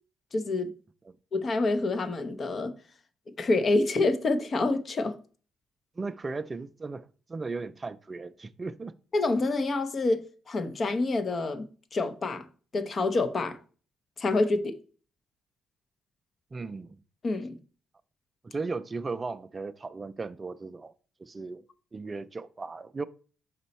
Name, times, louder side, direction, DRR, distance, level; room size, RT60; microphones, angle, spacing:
voice 1, 0.3-0.8 1.3-2.7 3.4-5.1 9.1-11.6 11.9-12.5 12.7-13.6 14.2-14.8 17.2-17.6, left 2 dB, 40° left, 0.7 m, -27 dB
voice 2, 6.0-9.0 16.5-16.9 18.4-20.9 21.2-21.6 21.9-23.0, right 3 dB, 30° right, 0.3 m, -36 dB
5.3 x 4.2 x 4.1 m
cardioid pair, 90°, 0 cm